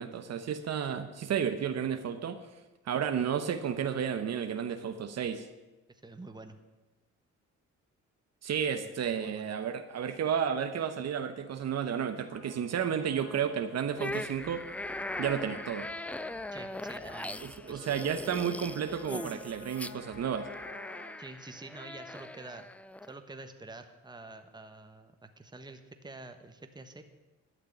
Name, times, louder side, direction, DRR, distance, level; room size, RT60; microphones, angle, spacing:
voice 1, 0.0-2.4 2.9-5.5 8.4-14.6 15.2-15.9 17.4-20.5, right 8 dB, 60° right, 8 dB, 1.0 m, -32 dB
voice 2, 5.9-6.6 8.8-8.9 9.2-9.5 16.5-17.9 21.2-22.7 23.1-27.0, right 2 dB, 15° right, 7 dB, 1.3 m, -47 dB
Trumpet, 12.3-21.1, left 3 dB, 80° left, 3.9 m, -51 dB
sound 1, 14.0-23.1, left 1 dB, 5° left, 0.3 m, -40 dB
12.0 x 6.7 x 9.1 m, 1.1 s
cardioid pair, 90°, 30 cm